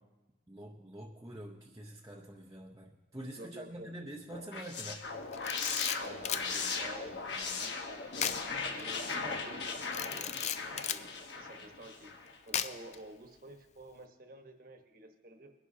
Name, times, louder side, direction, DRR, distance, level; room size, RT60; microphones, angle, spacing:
voice 1, 0.5-5.1, right 1 dB, 20° right, -2 dB, 0.7 m, -46 dB
voice 2, 3.3-4.1 6.0-7.7 8.7-9.6 9.9-10.3 10.7-15.5, right 1 dB, 50° right, 4 dB, 1.2 m, -51 dB
sound 1, 4.3-12.4, left 4 dB, 70° left, 1.2 m, -38 dB
Camera, 5.3-6.5 8.2-8.4 8.8-8.9 9.9-11.0 12.5-13.0, left 9 dB, 35° left, 0.4 m, -35 dB
21.5 x 11.0 x 2.8 m, 1.1 s
head